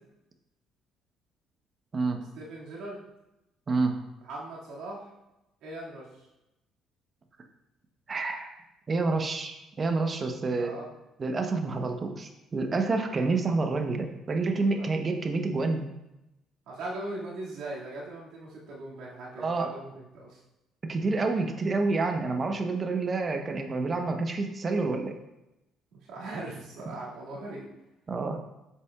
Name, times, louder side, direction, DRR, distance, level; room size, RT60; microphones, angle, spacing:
voice 1, 2.2-3.1 4.2-5.1 5.6-6.3 10.6-10.9 11.4-11.9 13.2-13.3 14.8-14.9 16.7-20.4 25.9-27.7, right 2 dB, 75° right, -5 dB, 2.2 m, -40 dB
voice 2, 8.1-8.5 8.9-10.7 11.2-15.9 19.4-19.7 20.9-25.1 28.1-28.4, right 3 dB, 40° right, 5 dB, 1.0 m, -28 dB
8.0 x 5.8 x 2.4 m, 0.93 s
supercardioid pair, 70°, 0 cm